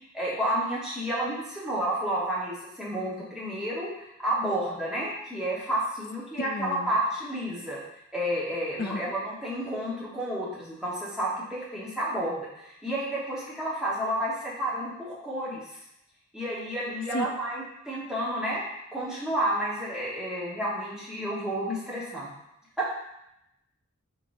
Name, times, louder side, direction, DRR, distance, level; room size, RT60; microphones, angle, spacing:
voice 1, 0.1-7.8 8.1-15.6 16.3-18.6 18.9-22.3 22.8-23.0, right 1 dB, 5° right, -7 dB, 1.0 m, -31 dB
voice 2, 6.4-6.9 8.8-9.1 17.1-17.3, left 3 dB, 45° left, 5 dB, 0.4 m, -32 dB
4.6 x 3.9 x 2.5 m, 0.82 s
head